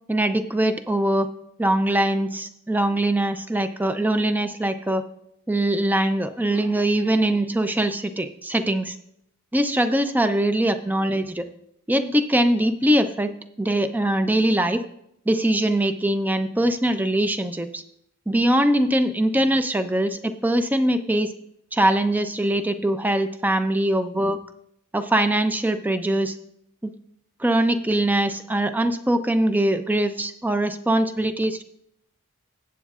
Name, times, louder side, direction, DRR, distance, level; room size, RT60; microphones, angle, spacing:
voice 1, 0.1-1.3 1.6-5.0 5.5-8.9 9.5-11.5 11.9-13.3 13.6-14.8 15.3-17.8 18.3-21.3 21.7-24.4 24.9-26.3 26.8-26.9 27.4-31.6, right 1 dB, 10° right, 9 dB, 0.5 m, -22 dB
19.5 x 8.1 x 2.4 m, 0.75 s
head